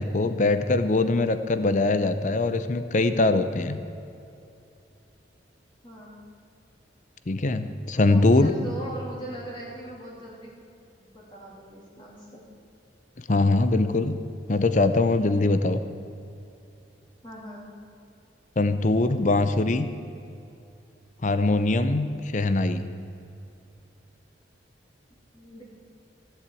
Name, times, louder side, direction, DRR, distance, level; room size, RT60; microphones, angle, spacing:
voice 1, 0.0-3.8 7.3-8.5 13.3-14.2 14.5-15.8 18.6-19.9 21.2-22.9, left 2 dB, 45° left, 11 dB, 0.6 m, -22 dB
voice 2, 5.8-6.3 8.0-10.5 11.0-12.4 17.2-17.8 25.3-25.6, right 1 dB, 25° left, -5 dB, 3.1 m, -40 dB
15.5 x 7.9 x 8.4 m, 2.7 s
head